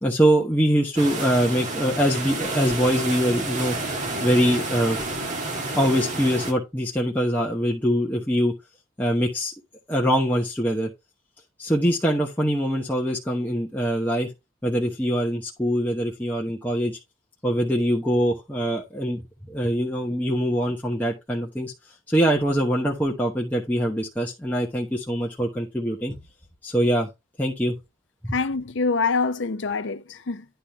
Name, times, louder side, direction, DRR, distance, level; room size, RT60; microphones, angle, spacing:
voice 1, 0.0-3.8 4.2-5.0 5.7-8.5 9.0-9.5 9.9-10.9 11.6-14.3 14.6-17.0 17.4-21.7 22.1-26.2 26.6-27.1 27.4-27.7 28.2-28.3, equal, 10° left, 1.0 m, -23 dB
sound 1, 1.0-6.5, right 2 dB, 35° right, 1.8 m, -30 dB
voice 2, 28.3-30.4, left 4 dB, 60° left, 0.6 m, -25 dB
10.5 x 3.7 x 4.6 m
head